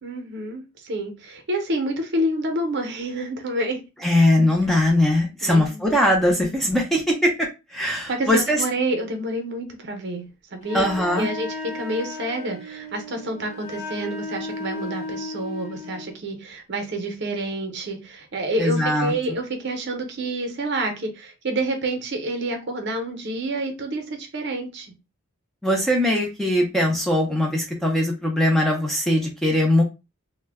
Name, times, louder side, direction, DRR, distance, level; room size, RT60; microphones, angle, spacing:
voice 1, 0.0-3.8 5.4-5.8 8.1-10.2 10.5-10.9 11.2-24.9, right 1 dB, 50° right, 4 dB, 0.6 m, -28 dB
voice 2, 4.0-8.6 10.7-11.3 18.6-19.1 25.6-29.8, left 1 dB, ahead, 0 dB, 0.4 m, -21 dB
Wind instrument woodwind instrument, 10.6-16.2, left 3 dB, 30° left, 0.9 m, -35 dB
2.1 x 2.1 x 3.3 m, 0.27 s
head